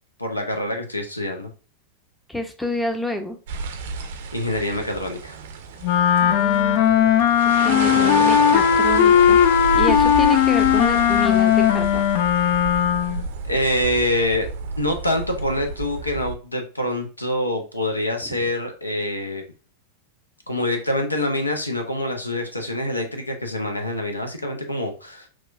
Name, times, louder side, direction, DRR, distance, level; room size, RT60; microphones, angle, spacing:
voice 1, 0.2-1.5 4.3-5.4 13.5-14.5 14.8-19.4 20.5-25.3, left 1 dB, 85° left, 5 dB, 0.7 m, -25 dB
voice 2, 2.3-3.4 6.2-7.1 7.4-9.4 9.7-12.0, left 1 dB, 5° left, 5 dB, 0.6 m, -29 dB
sound 1, 3.5-16.3, right 5 dB, 55° right, 0.5 m, -31 dB
Wind instrument woodwind instrument, 5.8-13.2, left 9 dB, 50° left, 0.4 m, -17 dB
6.1 x 2.4 x 2.5 m, 0.34 s
figure-of-eight pair, 90°, 0 cm